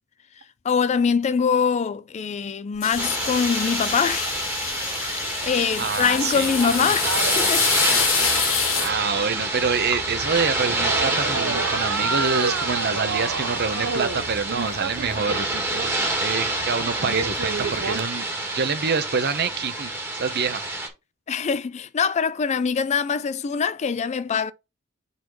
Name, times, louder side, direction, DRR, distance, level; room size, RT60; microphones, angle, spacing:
voice 1, 0.6-4.4 5.0-7.7 21.3-24.5, left 6 dB, 35° left, 0.3 m, -24 dB
sound 1, 2.8-8.9, left 7 dB, 70° left, 1.4 m, -26 dB
sound 2, 2.9-18.0, right 4 dB, 85° right, 0.6 m, -33 dB
sound 3, 3.0-20.9, right 2 dB, 10° right, 1.6 m, -27 dB
voice 2, 5.8-6.5 8.8-15.8 16.2-18.3 18.5-20.6, right 5 dB, 50° right, 0.8 m, -26 dB
4.7 x 4.1 x 5.2 m
head